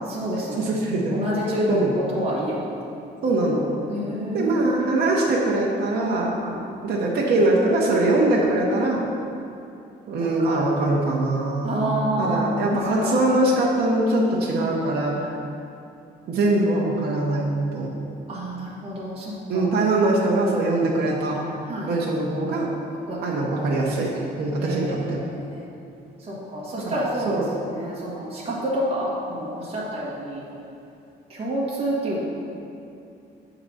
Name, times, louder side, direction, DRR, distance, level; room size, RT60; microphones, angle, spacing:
voice 1, 0.0-0.7 1.1-2.6 3.9-4.8 6.4-6.6 10.2-10.7 11.6-13.2 14.6-14.8 18.3-19.7 21.7-21.9 23.1-23.4 24.1-24.2 24.6-25.6 26.2-30.4 31.3-32.2, equal, 35° right, -7 dB, 1.6 m, -28 dB
voice 2, 0.6-1.2 1.7-1.9 3.2-3.7 4.3-6.3 6.8-9.0 10.1-15.3 16.3-17.9 19.5-21.4 21.9-22.7 23.2-24.1 24.4-25.2 26.8-27.4, right 2 dB, 65° right, -3 dB, 1.0 m, -22 dB
7.8 x 3.9 x 6.2 m, 2.6 s
cardioid pair, 155°, 18 cm